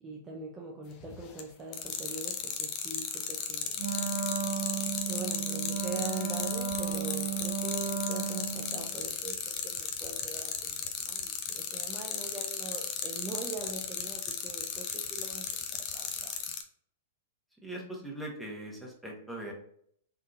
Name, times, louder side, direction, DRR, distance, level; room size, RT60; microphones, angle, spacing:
voice 1, 0.0-3.7 5.1-15.6 15.9-16.3, right 3 dB, 20° right, -1 dB, 0.5 m, -42 dB
sound 1, 1.0-1.4 1.7-16.6, left 8 dB, 40° left, 0.5 m, -35 dB
Wind instrument woodwind instrument, 3.8-8.9, right 8 dB, 75° right, 0.8 m, -34 dB
voice 2, 17.6-19.5, right 1 dB, ahead, -3 dB, 1.0 m, -40 dB
3.8 x 2.6 x 2.4 m, 0.66 s
hypercardioid pair, 120°, 0 cm